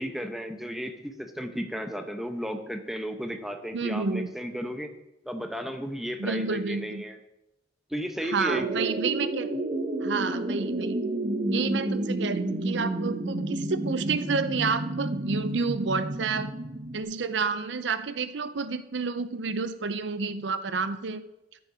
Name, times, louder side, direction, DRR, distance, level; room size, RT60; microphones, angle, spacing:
voice 1, 0.0-4.9 5.3-7.2 7.9-8.9, equal, ahead, 5 dB, 0.9 m, -34 dB
voice 2, 3.7-4.3 6.2-7.0 8.3-9.5 10.0-11.0 11.5-16.5 16.9-21.2, right 4 dB, 75° right, 12 dB, 0.6 m, -30 dB
sound 1, 8.5-17.0, right 2 dB, 40° right, 1.1 m, -30 dB
13.0 x 7.0 x 5.0 m, 0.88 s
head